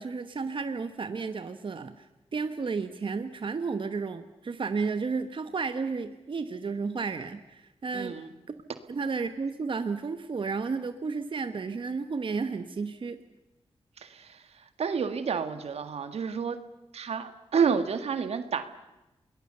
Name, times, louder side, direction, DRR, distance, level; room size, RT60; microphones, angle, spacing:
voice 1, 0.0-2.1 2.3-8.2 8.9-13.2, right 4 dB, 55° right, 9 dB, 1.2 m, -32 dB
voice 2, 7.9-8.3 14.0-16.6 16.9-18.6, right 6 dB, 75° right, 10 dB, 1.7 m, -30 dB
29.0 x 21.0 x 6.8 m, 0.99 s
cardioid pair, 60°, 11 cm